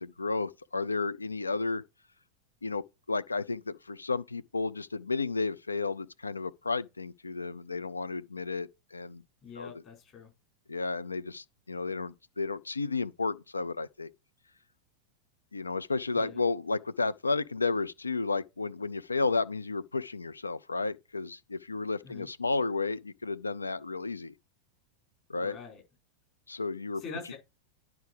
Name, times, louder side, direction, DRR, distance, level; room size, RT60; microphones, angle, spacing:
voice 1, 0.0-1.8 2.6-9.2 9.6-9.8 10.7-14.1 15.5-24.3 25.3-25.6 26.5-27.0, left 3 dB, 80° left, 0.4 m, -32 dB
voice 2, 9.4-10.3 16.1-16.4 22.0-22.3 25.4-25.8 27.0-27.3, left 5 dB, 35° left, 5.6 m, -44 dB
10.0 x 4.7 x 5.0 m
figure-of-eight pair, 90°, 0 cm